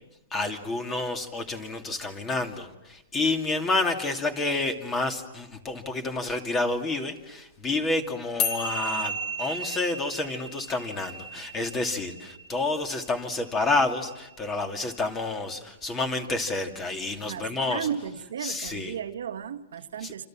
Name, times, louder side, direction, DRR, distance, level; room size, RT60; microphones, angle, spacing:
voice 1, 0.3-17.9 18.4-18.9 20.0-20.1, left 2 dB, 15° left, 2.6 m, -29 dB
sound 1, 8.4-15.0, left 1 dB, 35° left, 2.6 m, -35 dB
voice 2, 17.2-20.3, right 8 dB, 80° right, 1.7 m, -34 dB
27.5 x 27.5 x 7.5 m
hypercardioid pair, 155°, 0 cm